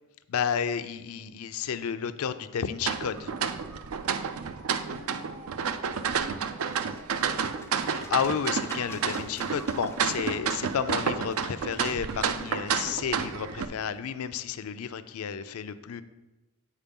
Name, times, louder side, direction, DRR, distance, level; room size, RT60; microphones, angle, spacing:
voice 1, 0.3-3.3 7.9-16.0, left 7 dB, 85° left, 12 dB, 0.4 m, -31 dB
sound 1, 2.8-13.7, right 6 dB, 75° right, 0.4 m, -30 dB
voice 2, 4.8-7.7, left 1 dB, 40° right, 5 dB, 0.9 m, -49 dB
sound 2, 6.5-14.0, left 3 dB, 10° left, 0.4 m, -51 dB
7.3 x 4.4 x 5.3 m, 1.1 s
head